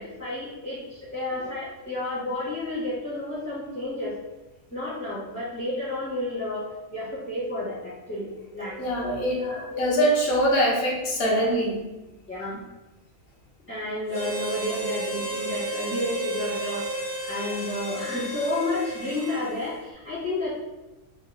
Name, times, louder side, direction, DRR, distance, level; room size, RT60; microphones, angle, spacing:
voice 1, 0.0-4.1 4.7-6.6 6.9-8.3 8.5-8.7 9.3-9.9 12.3-12.6 13.7-16.9 17.2-20.6, left 1 dB, 10° left, -14 dB, 1.3 m, -31 dB
voice 2, 8.8-9.4 9.8-11.8 14.7-14.8, equal, 85° left, -3 dB, 1.3 m, -23 dB
Harmonica, 14.1-19.7, right 1 dB, 40° left, 1.5 m, -33 dB
3.5 x 3.4 x 2.2 m, 1.1 s
omnidirectional pair, 1.5 m